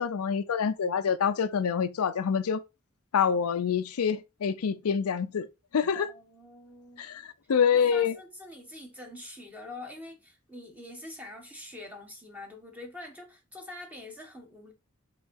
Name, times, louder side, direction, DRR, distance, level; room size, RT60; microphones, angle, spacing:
voice 1, 0.0-2.6 3.1-5.5 5.7-6.1 7.0-8.2, left 7 dB, 80° left, 0.5 m, -26 dB
voice 2, 5.9-7.2 7.7-14.7, left 2 dB, 5° right, 1.5 m, -45 dB
5.4 x 3.8 x 4.6 m
head